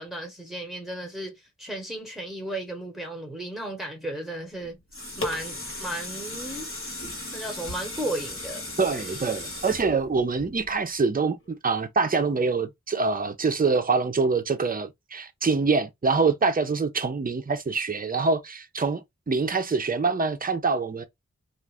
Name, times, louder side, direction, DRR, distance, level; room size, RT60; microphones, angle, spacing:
voice 1, 0.0-4.8 5.2-6.7 7.3-8.6, right 1 dB, ahead, 1.0 m, -34 dB
sound 1, 4.6-10.9 11.5-11.6, left 1 dB, 45° left, 1.2 m, -36 dB
voice 2, 8.8-21.0, right 4 dB, 30° right, 0.5 m, -25 dB
2.5 x 2.4 x 3.3 m
wide cardioid pair, 45°, 29 cm